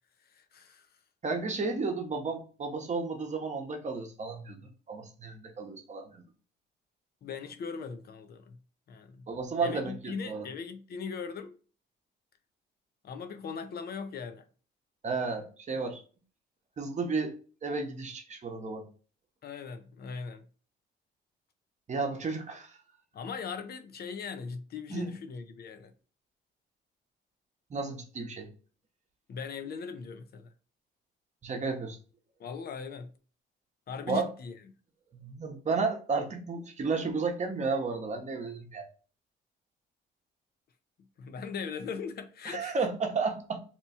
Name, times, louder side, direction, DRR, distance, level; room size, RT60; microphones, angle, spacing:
voice 1, 0.3-0.9 7.2-8.6 8.9-9.3 9.6-11.6 13.0-14.5 19.4-20.4 23.1-25.9 29.3-30.5 32.4-33.1 33.9-34.6 41.2-42.8, left 5 dB, 50° left, 0.6 m, -39 dB
voice 2, 1.2-6.2 9.3-10.5 15.0-16.0 16.8-17.4 17.6-18.9 21.9-22.8 24.9-25.1 27.7-28.5 31.4-32.0 34.1-34.3 35.1-38.9 42.5-43.6, right 4 dB, 35° right, 0.9 m, -33 dB
2.9 x 2.2 x 4.2 m
cardioid pair, 90°, 20 cm